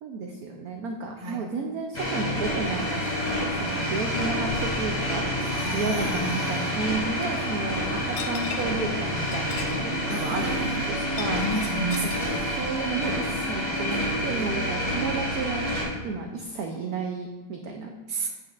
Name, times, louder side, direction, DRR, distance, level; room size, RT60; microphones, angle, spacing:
voice 1, 0.0-3.1 3.4-5.3 5.7-11.4 12.0-15.7 16.0-17.9, right 4 dB, 70° right, 3 dB, 0.9 m, -32 dB
sound 1, 1.9-15.8, equal, 20° left, 2.4 m, -28 dB
sound 2, 4.5-7.5, left 3 dB, 65° left, 1.0 m, -41 dB
voice 2, 5.4-6.8 10.1-11.0 11.3-12.2 13.9-14.7 18.1-18.3, right 2 dB, 35° right, 0 dB, 0.9 m, -33 dB
sound 3, 7.2-7.4 8.0-8.8 9.2-9.8 10.1-10.2 11.0-12.2, left 7 dB, 85° left, 1.4 m, -40 dB
8.5 x 7.9 x 2.4 m, 1.2 s
omnidirectional pair, 2.1 m